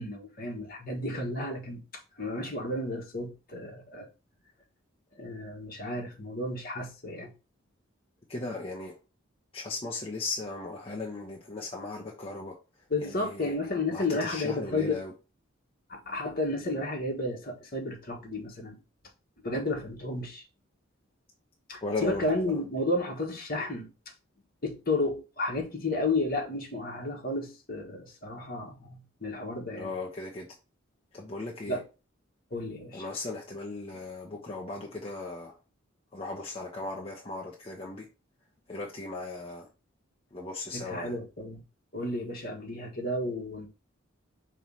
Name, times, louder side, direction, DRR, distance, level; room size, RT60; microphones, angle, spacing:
voice 1, 0.0-1.8 2.2-4.1 5.2-7.3 12.9-15.0 15.9-18.8 19.4-20.4 21.7-23.9 24.6-29.9 31.7-31.8 32.5-33.0 40.7-41.6 41.9-43.7, left 2 dB, 50° left, 1.6 m, -32 dB
voice 2, 8.3-9.0 9.5-12.6 13.0-13.5 13.9-15.1 21.8-22.6 29.8-30.5 31.1-31.8 32.9-35.6 36.1-38.1 38.7-39.7 40.3-41.2, left 3 dB, 30° left, 0.9 m, -37 dB
5.6 x 3.2 x 5.6 m
head